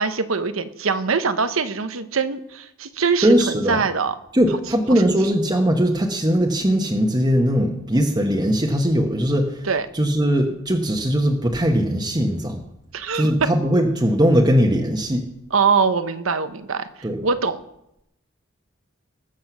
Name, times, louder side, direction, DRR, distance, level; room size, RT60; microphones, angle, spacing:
voice 1, 0.0-4.1 4.5-4.6 4.9-5.1 9.6-9.9 12.9-13.3 15.5-17.6, right 5 dB, 80° right, 11 dB, 0.9 m, -23 dB
voice 2, 3.2-3.8 4.3-9.6 9.9-12.6 13.1-15.2 17.0-17.2, equal, 20° right, 2 dB, 1.1 m, -20 dB
19.5 x 7.5 x 6.1 m, 0.82 s
head